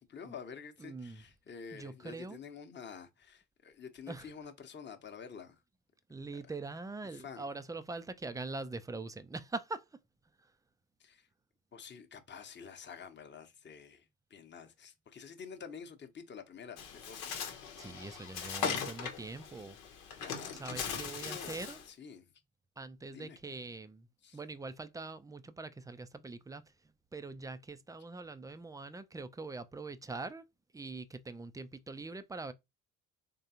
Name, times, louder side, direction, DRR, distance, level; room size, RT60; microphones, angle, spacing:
voice 1, 0.1-5.6 6.4-6.5 7.0-7.5 11.0-11.3 11.7-17.7 20.2-21.6 21.9-22.3 23.1-23.4 24.2-24.4, left 6 dB, 25° left, 0.9 m, -49 dB
voice 2, 0.8-1.2 1.7-2.4 4.1-4.3 6.1-9.8 17.8-19.8 20.6-21.8 22.8-24.1 24.3-26.6 27.1-30.4 30.7-32.5, right 3 dB, 10° right, 0.3 m, -43 dB
Bird, 16.8-21.9, left 6 dB, 80° left, 0.9 m, -39 dB
3.7 x 3.3 x 2.8 m
hypercardioid pair, 50°, 41 cm